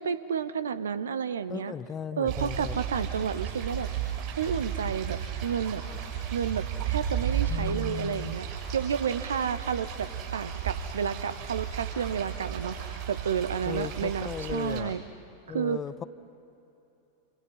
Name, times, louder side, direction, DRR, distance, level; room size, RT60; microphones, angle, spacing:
voice 1, 0.0-1.7 2.2-3.9 4.4-5.8 6.3-8.5 8.7-12.8 13.1-15.0 15.5-15.8, right 7 dB, 65° right, 15 dB, 0.8 m, -31 dB
voice 2, 1.5-2.8 7.5-8.3 13.7-14.9 15.5-16.0, left 7 dB, 25° left, 15 dB, 0.7 m, -36 dB
sound 1, 2.3-14.8, right 8 dB, 45° right, 7.3 m, -34 dB
28.0 x 26.5 x 5.7 m, 2.9 s
figure-of-eight pair, 90°, 0 cm